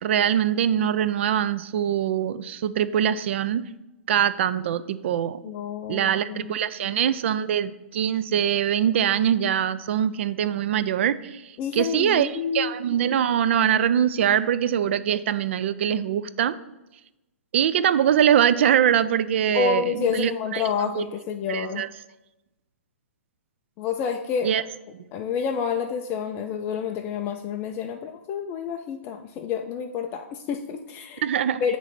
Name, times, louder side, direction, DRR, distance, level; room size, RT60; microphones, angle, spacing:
voice 1, 0.0-3.6 4.1-5.4 5.9-16.6 17.5-20.6 20.9-21.1 21.5-21.9 24.4-24.6 31.2-31.6, right 9 dB, 55° right, 14 dB, 0.4 m, -23 dB
voice 2, 5.4-6.6 6.9-7.0 11.6-12.7 19.5-21.8 23.8-24.5 25.1-31.2 31.6-31.8, left 7 dB, 25° left, 4 dB, 0.3 m, -29 dB
9.1 x 3.0 x 4.2 m, 0.98 s
hypercardioid pair, 140°, 8 cm